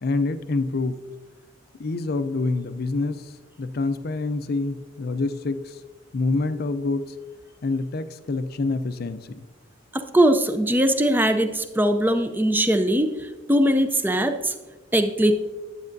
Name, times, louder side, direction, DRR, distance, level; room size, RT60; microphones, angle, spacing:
voice 1, 0.0-1.0 1.8-5.8 6.1-7.2 7.6-9.5, left 3 dB, 50° left, 12 dB, 0.4 m, -27 dB
voice 2, 9.9-14.5 14.9-15.4, right 1 dB, 10° right, 8 dB, 0.4 m, -21 dB
9.6 x 8.4 x 2.6 m, 1.3 s
head